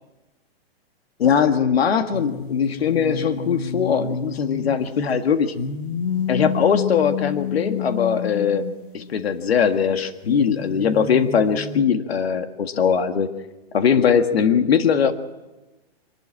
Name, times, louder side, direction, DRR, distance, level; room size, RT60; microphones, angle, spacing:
voice 1, 1.2-5.5 6.3-8.7 8.9-13.3 13.7-15.1, left 7 dB, 75° left, 8 dB, 1.7 m, -20 dB
sound 1, 2.1-5.2 5.6-9.5 10.2-11.8, left 6 dB, 55° left, 1.5 m, -29 dB
25.0 x 12.0 x 8.7 m, 1.1 s
hypercardioid pair, 180°, 31 cm